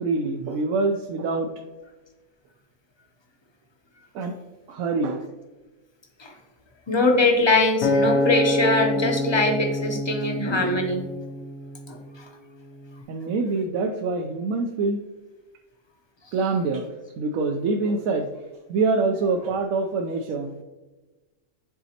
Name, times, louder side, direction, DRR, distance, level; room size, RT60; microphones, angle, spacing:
voice 1, 0.0-1.5 4.1-4.3 4.7-5.3 13.1-15.0 16.3-16.9 17.2-18.3 18.7-20.5, right 3 dB, 75° right, 3 dB, 1.0 m, -25 dB
voice 2, 6.9-11.1 11.9-12.0, left 2 dB, 30° left, 2 dB, 0.5 m, -22 dB
Acoustic guitar, 7.8-12.2 12.8-13.0, left 1 dB, 90° left, 1.3 m, -26 dB
10.0 x 4.0 x 2.8 m, 1.2 s
omnidirectional pair, 1.6 m